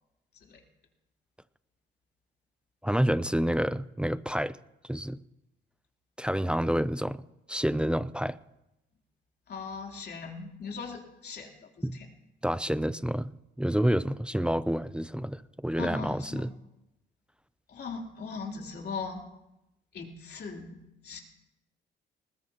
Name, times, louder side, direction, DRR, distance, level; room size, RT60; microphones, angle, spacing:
voice 1, 2.8-4.6 4.9-5.2 6.2-7.2 7.5-8.4 11.8-12.0 12.4-13.3 13.6-16.5, equal, 5° right, 15 dB, 0.5 m, -28 dB
voice 2, 9.5-12.1 15.7-16.5 17.7-19.2 19.9-21.2, left 4 dB, 55° left, 0 dB, 3.5 m, -39 dB
20.5 x 20.0 x 3.0 m, 0.92 s
cardioid pair, 90°, 20 cm